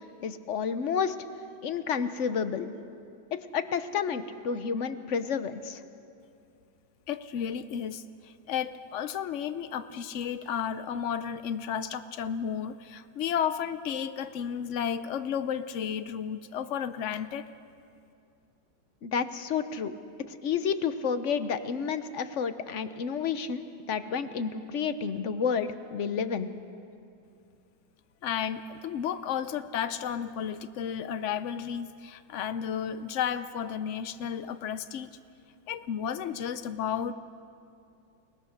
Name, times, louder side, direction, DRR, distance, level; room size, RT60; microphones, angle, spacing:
voice 1, 0.2-1.2 1.6-2.7 3.3-5.8 19.0-19.9 20.3-26.5, left 6 dB, 50° left, 11 dB, 0.9 m, -30 dB
voice 2, 7.1-17.5 28.2-35.1 35.7-37.1, left 8 dB, 80° left, 11 dB, 0.6 m, -33 dB
30.0 x 19.5 x 6.5 m, 2.5 s
omnidirectional pair, 2.1 m